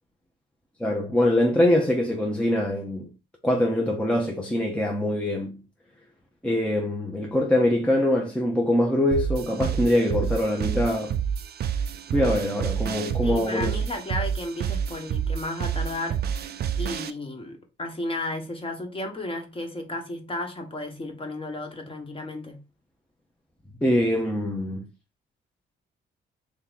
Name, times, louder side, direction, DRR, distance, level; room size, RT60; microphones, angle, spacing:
voice 1, 0.8-3.1 3.4-5.6 6.4-11.2 12.1-13.8 23.8-24.8, left 1 dB, 5° left, 0.8 m, -23 dB
sound 1, 9.1-17.1, right 8 dB, 55° right, 0.4 m, -29 dB
voice 2, 13.2-16.2 16.7-22.6, left 2 dB, 25° left, 1.2 m, -33 dB
3.4 x 3.0 x 3.9 m
cardioid pair, 90°, 20 cm